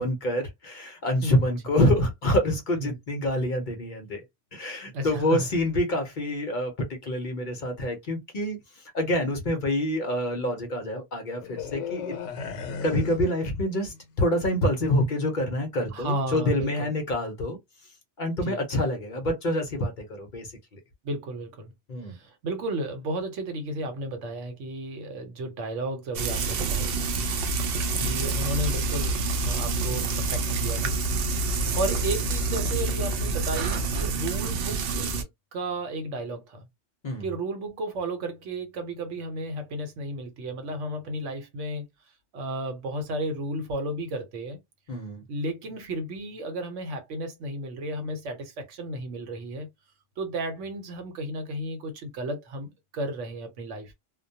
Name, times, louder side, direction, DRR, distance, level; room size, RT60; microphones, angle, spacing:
voice 1, 0.0-4.2 4.5-12.5 12.8-17.6 18.2-20.8 21.9-22.2 37.0-37.3 44.9-45.2, left 1 dB, 50° left, 0.7 m, -27 dB
voice 2, 1.2-1.5 2.8-3.0 4.9-5.5 15.9-16.9 18.4-18.6 21.0-21.7 22.1-27.0 27.9-31.5 31.8-36.6 37.2-41.9 42.3-44.6 45.3-49.7 50.2-53.9, right 1 dB, 80° right, 1.1 m, -33 dB
sound 1, 11.4-14.1 14.4-14.6, left 6 dB, 80° left, 0.9 m, -35 dB
Frying (food), 26.1-35.2, right 3 dB, 60° right, 0.7 m, -27 dB
2.2 x 2.2 x 2.6 m
omnidirectional pair, 1.2 m